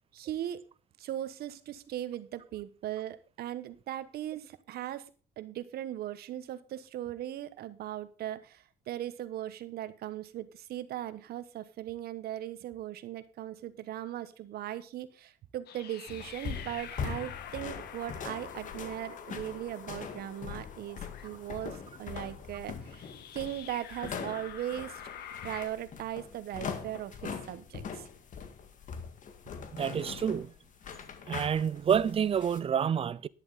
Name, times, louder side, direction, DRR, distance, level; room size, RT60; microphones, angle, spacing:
voice 1, 0.1-0.6 1.0-5.1 5.4-25.0 25.4-28.1, right 12 dB, 65° right, 1.2 m, -39 dB
sound 1, 15.7-25.7, left 8 dB, 70° left, 1.7 m, -47 dB
sound 2, 16.1-32.6, left 6 dB, 50° left, 1.9 m, -42 dB
voice 2, 29.7-30.5 31.3-33.3, right 8 dB, 35° right, 0.6 m, -28 dB
11.0 x 10.5 x 4.1 m
cardioid pair, 110°, 17 cm